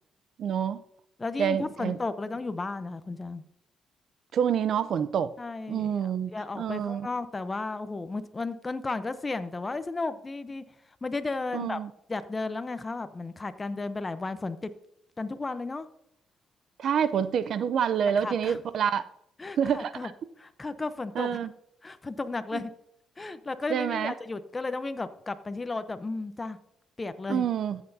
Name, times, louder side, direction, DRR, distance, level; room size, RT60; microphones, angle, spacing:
voice 1, 0.4-0.8 1.4-2.0 4.3-5.3 5.7-6.3 6.6-7.1 11.5-11.9 16.8-19.0 19.6-20.1 21.2-21.5 22.5-22.6 23.7-24.1 27.3-27.8, right 8 dB, 65° right, 0.6 m, -27 dB
voice 2, 1.2-3.4 5.4-10.6 11.0-11.8 12.1-14.7 15.2-15.9 18.2-18.6 19.4-20.1 20.4-21.4 21.8-22.7 23.2-26.6 27.0-27.5, left 3 dB, 25° left, 0.8 m, -34 dB
14.0 x 8.0 x 2.8 m
cardioid pair, 90°, 0 cm